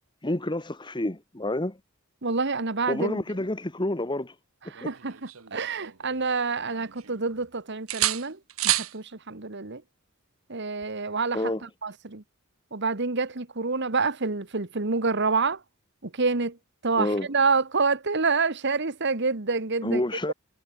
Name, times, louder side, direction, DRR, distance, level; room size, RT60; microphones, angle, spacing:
voice 1, 0.2-1.8 2.9-4.3 4.8-4.9 11.3-11.7 16.9-17.3 19.8-20.3, left 1 dB, 20° left, 1.6 m, -28 dB
voice 2, 2.2-3.2 4.7-5.2 5.5-8.4 8.6-9.8 10.5-11.4 11.8-12.2 12.7-15.6 16.0-16.6 16.8-20.0, right 4 dB, 55° right, 1.6 m, -27 dB
sound 1, 4.8-6.3 6.7-7.5 7.9-9.0 10.8-11.0, right 14 dB, 85° right, 1.3 m, -30 dB
head